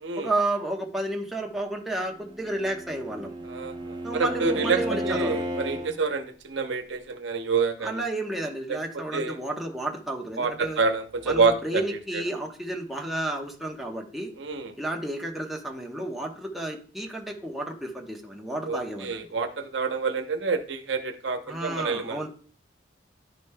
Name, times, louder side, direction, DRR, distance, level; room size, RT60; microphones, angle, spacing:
voice 1, 0.2-3.3 4.0-5.4 7.8-10.8 11.3-14.3 14.8-19.2 21.5-22.3, right 1 dB, ahead, -1 dB, 0.9 m, -31 dB
Bowed string instrument, 2.2-5.9, equal, 25° right, 1.1 m, -33 dB
voice 2, 3.4-8.1 8.7-8.8 9.1-9.4 10.4-11.8 12.1-12.2 14.4-14.7 18.6-22.3, right 4 dB, 85° right, 7 dB, 0.8 m, -27 dB
11.0 x 5.1 x 2.2 m, 0.41 s
head